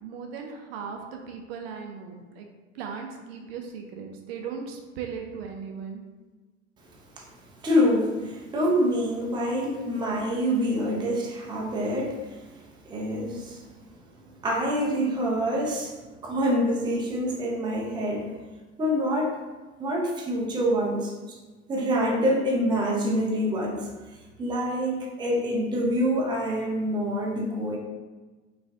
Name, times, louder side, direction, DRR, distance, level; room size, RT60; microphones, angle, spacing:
voice 1, 0.0-2.5 2.7-6.0, right 6 dB, 55° right, 2 dB, 0.6 m, -37 dB
voice 2, 7.6-12.4 12.9-13.6 14.4-15.9 16.2-18.3 18.8-19.4 19.8-21.4 21.7-23.9 24.4-27.8, equal, 10° right, -1 dB, 0.6 m, -26 dB
4.4 x 2.5 x 3.5 m, 1.3 s
figure-of-eight pair, 70°, 37 cm